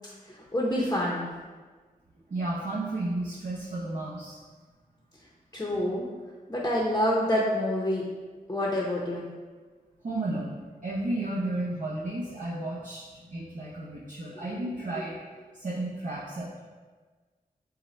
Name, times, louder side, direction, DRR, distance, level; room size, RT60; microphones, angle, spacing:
voice 1, 0.3-1.3 5.5-6.1 6.5-8.0 8.5-9.2, left 1 dB, 20° left, -3 dB, 0.7 m, -27 dB
voice 2, 2.3-4.4 10.0-15.2 15.5-16.6, right 2 dB, 55° right, -7 dB, 0.8 m, -33 dB
5.6 x 2.2 x 4.2 m, 1.4 s
wide cardioid pair, 75°, 15 cm